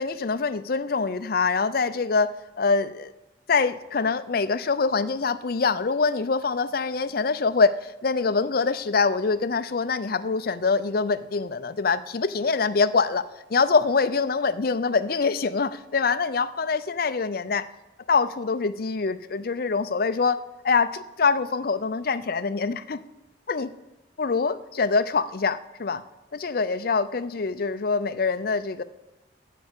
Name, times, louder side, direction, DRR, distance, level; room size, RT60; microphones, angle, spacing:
voice 1, 0.0-3.1 3.5-17.7 18.1-20.4 20.6-23.0 23.5-23.7 24.2-26.0 26.3-28.8, left 4 dB, 50° left, 12 dB, 0.5 m, -24 dB
9.2 x 8.3 x 8.1 m, 1.0 s
head